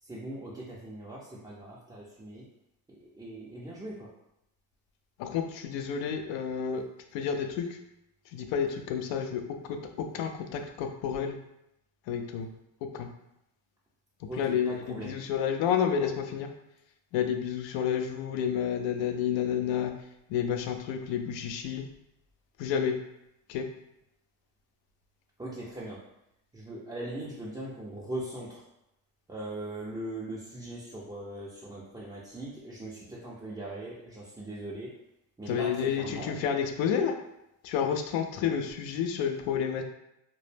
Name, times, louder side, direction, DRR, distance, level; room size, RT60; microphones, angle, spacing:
voice 1, 0.0-2.4 2.9-4.1 9.2-9.3 14.3-15.2 25.4-26.1 26.5-28.6 29.3-34.9 35.4-36.4, right 1 dB, 10° right, -8 dB, 0.4 m, -40 dB
voice 2, 5.2-6.8 7.1-7.7 8.3-11.4 12.1-12.5 12.8-13.1 14.4-14.7 15.0-16.5 17.1-19.9 20.3-21.9 22.6-22.9 23.5-23.7 35.5-37.2 37.6-39.8, left 8 dB, 70° left, 6 dB, 0.5 m, -30 dB
2.1 x 2.0 x 3.2 m, 0.84 s
supercardioid pair, 75°, 48 cm